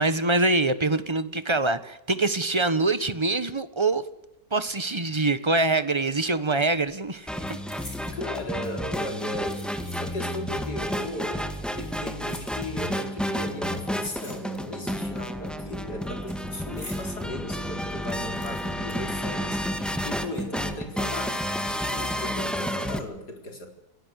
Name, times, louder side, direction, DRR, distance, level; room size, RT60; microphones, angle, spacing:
voice 1, 0.0-4.0 4.5-7.6, right 2 dB, 20° right, 13 dB, 1.1 m, -24 dB
sound 1, 6.3-6.5 6.8-8.2 9.0-10.4 10.7-10.8 11.6-13.0 13.7-14.9 15.2-17.1 17.5-17.6 17.8-20.0 20.2-20.3 21.0-21.4 21.8-22.1, left 1 dB, 30° left, 7.2 m, -48 dB
sound 2, 7.3-23.0, equal, ahead, 1.9 m, -31 dB
voice 2, 8.0-9.6 10.0-23.7, left 1 dB, 85° left, 4 dB, 4.8 m, -37 dB
27.0 x 18.0 x 8.2 m, 0.85 s
omnidirectional pair, 1.7 m